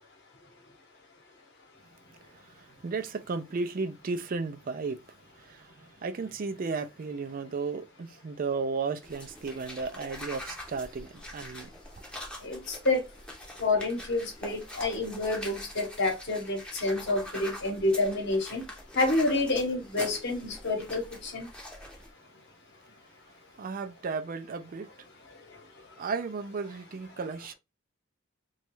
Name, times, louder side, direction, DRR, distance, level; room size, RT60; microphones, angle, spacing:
voice 1, 2.3-5.0 5.4-11.7 23.6-24.9 26.0-27.5, right 4 dB, 40° right, 0.4 m, -34 dB
sound 1, 9.0-22.1, left 1 dB, 5° left, 0.7 m, -44 dB
voice 2, 12.4-13.0 13.6-18.6 18.9-21.5, left 2 dB, 55° left, 1.0 m, -28 dB
3.1 x 2.3 x 2.9 m
head